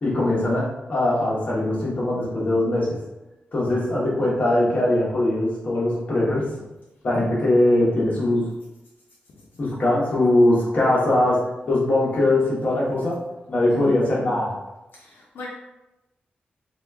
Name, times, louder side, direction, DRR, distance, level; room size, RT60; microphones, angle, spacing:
voice 1, 0.0-3.0 3.5-6.5 7.0-8.5 9.6-13.2 13.5-14.5, left 1 dB, 40° left, -5 dB, 1.0 m, -21 dB
voice 2, 7.6-8.0 9.3-9.5 13.7-14.0 14.9-15.5, left 2 dB, 80° left, -3 dB, 0.4 m, -39 dB
2.8 x 2.3 x 3.4 m, 0.98 s
wide cardioid pair, 165°, 4 cm